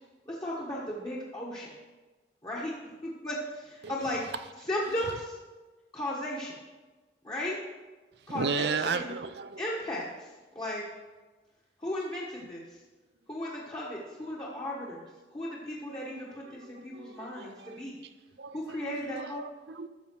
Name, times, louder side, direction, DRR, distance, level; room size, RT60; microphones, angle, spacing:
voice 1, 0.3-1.8 2.4-4.2 4.6-5.4 5.9-6.6 7.2-7.6 8.3-9.1 9.6-10.9 11.8-12.8 13.3-18.0 18.5-19.4, left 1 dB, 25° left, -5 dB, 1.3 m, -36 dB
voice 2, 8.2-9.6 16.5-17.8 18.4-19.9, right 5 dB, 65° right, 10 dB, 0.5 m, -35 dB
13.0 x 7.1 x 4.6 m, 1.3 s
head